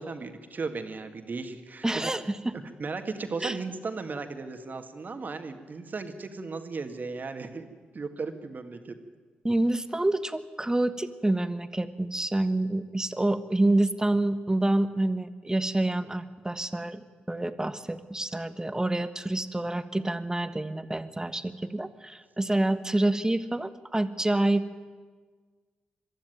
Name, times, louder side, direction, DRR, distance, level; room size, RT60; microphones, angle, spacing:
voice 1, 0.0-2.1 2.8-7.7 7.9-9.0, right 4 dB, 45° right, 7 dB, 2.0 m, -36 dB
voice 2, 1.8-2.5 3.4-3.6 9.4-24.8, right 1 dB, 15° right, 12 dB, 1.4 m, -27 dB
22.5 x 13.0 x 9.5 m, 1.5 s
hypercardioid pair, 40°, 4 cm